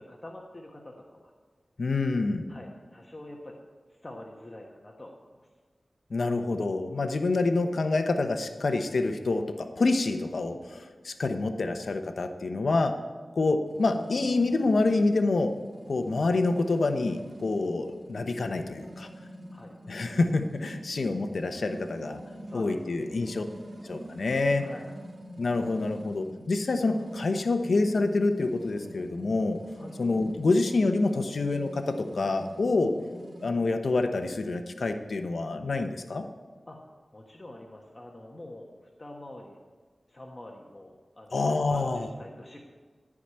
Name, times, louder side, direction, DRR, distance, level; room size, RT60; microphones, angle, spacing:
voice 1, 0.0-1.3 2.5-3.6 3.9-5.5 19.5-19.7 22.4-23.3 24.6-24.9 29.8-30.0 36.7-39.6 40.1-42.6, left 1 dB, 35° left, 0 dB, 1.3 m, -46 dB
voice 2, 1.8-2.5 6.1-13.0 13.3-15.5 15.9-19.1 19.9-22.2 22.5-23.4 23.8-24.6 25.4-29.6 30.0-32.9 33.4-36.3 41.3-42.1, left 3 dB, 80° left, 7 dB, 0.9 m, -27 dB
sound 1, 13.7-33.5, equal, 80° right, 1.9 m, -45 dB
14.5 x 5.0 x 8.8 m, 1.5 s
wide cardioid pair, 60°, 0 cm